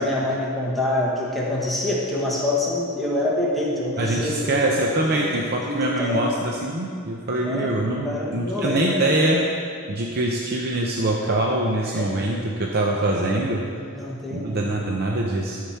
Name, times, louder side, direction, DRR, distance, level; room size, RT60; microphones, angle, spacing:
voice 1, 0.0-4.8 5.2-6.3 7.4-7.8 8.0-9.1 11.9-12.1 13.9-14.6, left 1 dB, ahead, -5 dB, 1.2 m, -26 dB
voice 2, 4.0-9.4 9.9-13.6 14.3-15.6, right 1 dB, 45° right, -1 dB, 0.7 m, -24 dB
12.5 x 4.9 x 5.7 m, 2.3 s
head